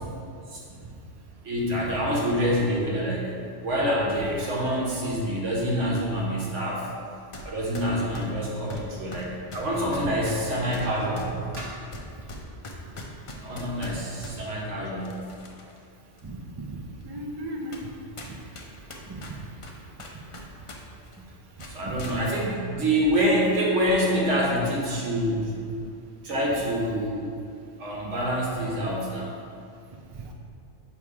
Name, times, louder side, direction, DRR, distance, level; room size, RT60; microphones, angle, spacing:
voice 1, 1.4-3.2 3.6-6.9 7.4-11.3 11.6-11.7 13.4-15.2 21.7-25.5 26.2-27.3 27.8-29.3, equal, 75° right, -4 dB, 1.4 m, -26 dB
sound 1, 7.3-7.5 7.7-14.4 15.0-15.8 16.2-16.3 17.0-17.1 17.7-17.9 18.2-20.8 21.0-21.2 21.6-22.2, left 1 dB, 40° left, 0.4 m, -41 dB
voice 2, 16.2-16.8 17.0-17.8 18.3-18.4 19.1-19.2 21.8-22.0 30.2-30.3, right 1 dB, 40° right, 0 dB, 0.3 m, -36 dB
7.1 x 3.1 x 4.7 m, 2.4 s
omnidirectional pair, 1.2 m